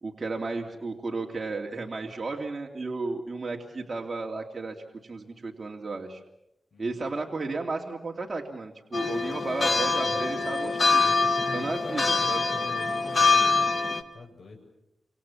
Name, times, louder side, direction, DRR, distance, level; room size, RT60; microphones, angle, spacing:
voice 1, 0.0-4.8 5.0-6.2 6.8-11.1 11.5-12.5, right 3 dB, 35° right, 0 dB, 2.8 m, -33 dB
voice 2, 6.7-7.1 9.5-10.5 11.0-14.6, left 3 dB, 60° left, 1 dB, 7.5 m, -44 dB
sound 1, 8.9-14.0, left 4 dB, 35° left, 1.8 m, -24 dB
28.5 x 26.5 x 7.2 m, 0.83 s
wide cardioid pair, 115°, 0 cm